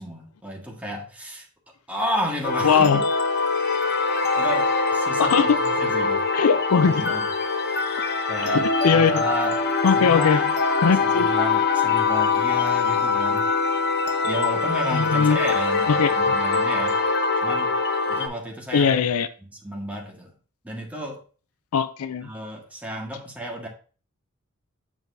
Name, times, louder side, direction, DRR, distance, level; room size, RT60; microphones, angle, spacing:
voice 1, 0.0-1.4 1.9-3.0 4.3-6.2 6.8-7.3 8.3-8.6 8.9-9.6 9.9-10.5 11.0-13.4 14.2-17.0 17.4-17.7 18.1-18.9 19.5-20.3 20.6-21.2 22.2-23.7, equal, 5° right, 1.6 m, -32 dB
sound 1, 2.4-18.3, left 4 dB, 50° left, 0.9 m, -23 dB
voice 2, 2.6-3.0 5.2-5.6 6.3-7.2 8.4-9.2 9.8-10.4 10.8-11.3 14.9-15.4 15.9-16.3 18.7-19.3 21.7-22.3, left 6 dB, 75° left, 0.5 m, -20 dB
7.1 x 6.1 x 2.7 m
head